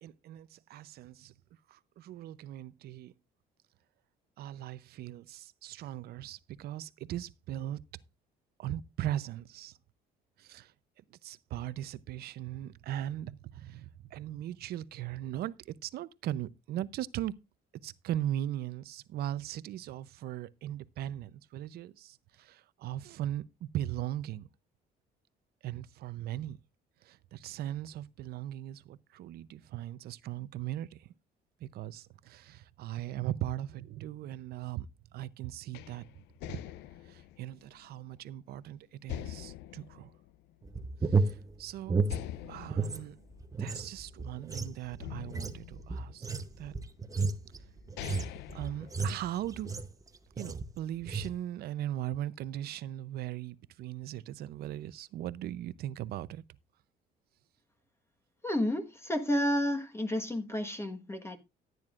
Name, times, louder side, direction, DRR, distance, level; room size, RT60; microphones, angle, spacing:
voice 1, 0.0-1.3 1.7-3.1 4.4-7.8 8.6-9.8 10.4-10.7 11.2-17.3 17.8-24.5 25.6-26.6 27.0-31.1 31.6-36.0 36.4-36.6 37.0-40.1 41.0-42.0 42.5-43.2 43.6-46.3 46.6-46.7 48.5-49.7 50.4-56.4, right 12 dB, 70° right, 0.7 m, -39 dB
sound 1, 35.7-38.6 39.1-41.0 41.4-41.5 42.1-44.4 45.0-46.6 47.3-47.4 47.8-49.6, left 13 dB, 85° left, 0.5 m, -44 dB
sound 2, 40.6-43.0 43.3-50.0 50.4-50.7 51.0-51.4, right 4 dB, 20° right, 0.9 m, -33 dB
voice 2, 58.4-61.4, left 1 dB, 15° left, 1.4 m, -31 dB
15.0 x 9.4 x 2.5 m
cardioid pair, 110°, 17 cm